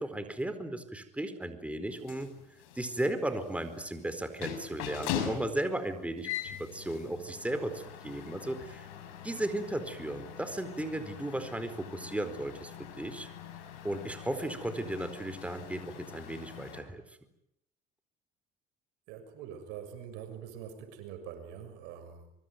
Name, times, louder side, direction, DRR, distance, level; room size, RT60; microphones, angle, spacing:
voice 1, 0.0-2.3 2.7-8.9 9.2-13.3 13.8-17.0, right 1 dB, 5° right, 9 dB, 4.5 m, -35 dB
sound 1, 1.9-16.8, left 10 dB, 85° left, 5.8 m, -42 dB
voice 2, 19.1-22.3, right 8 dB, 80° right, 8 dB, 6.6 m, -44 dB
24.5 x 24.0 x 9.4 m, 0.80 s
supercardioid pair, 80°, 18 cm